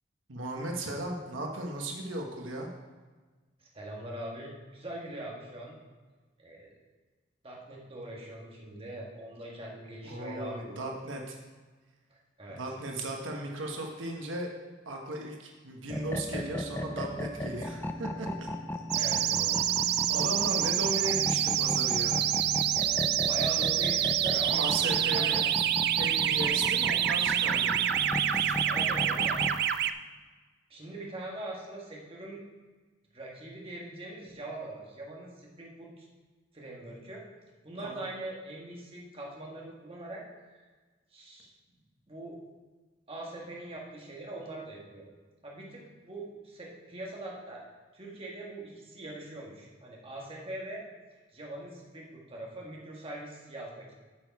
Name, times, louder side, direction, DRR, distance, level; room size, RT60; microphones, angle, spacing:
voice 1, 0.3-2.7 10.0-11.4 12.6-14.5 14.9-19.2 20.1-22.2 24.5-25.4 26.0-27.8 28.3-28.5 37.8-38.0, right 1 dB, 85° right, 1 dB, 1.2 m, -36 dB
voice 2, 3.6-5.7 6.4-6.8 7.4-10.9 12.1-12.6 18.9-19.6 22.8-23.0 23.2-25.5 26.7-27.0 28.7-29.4 30.7-32.4 33.1-36.1 36.5-37.2 37.6-40.6 41.1-41.5 42.1-42.4 43.1-45.1 45.4-47.6 47.9-50.8 51.3-54.0, right 1 dB, 30° right, -3 dB, 1.7 m, -42 dB
sound 1, 15.9-29.6, left 1 dB, 10° left, 0.4 m, -36 dB
sound 2, 18.9-29.9, right 11 dB, 55° right, 0.4 m, -27 dB
8.8 x 6.7 x 4.7 m, 1.3 s
head